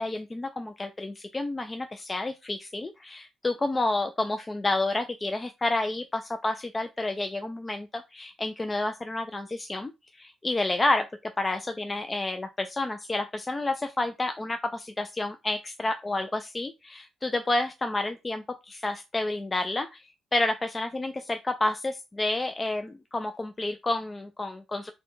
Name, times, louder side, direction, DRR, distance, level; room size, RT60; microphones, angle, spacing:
voice 1, 0.0-9.9 10.2-20.0 20.3-24.9, left 2 dB, 20° left, 7 dB, 0.3 m, -30 dB
4.1 x 2.2 x 3.1 m, 0.24 s
cardioid pair, 90°, 0 cm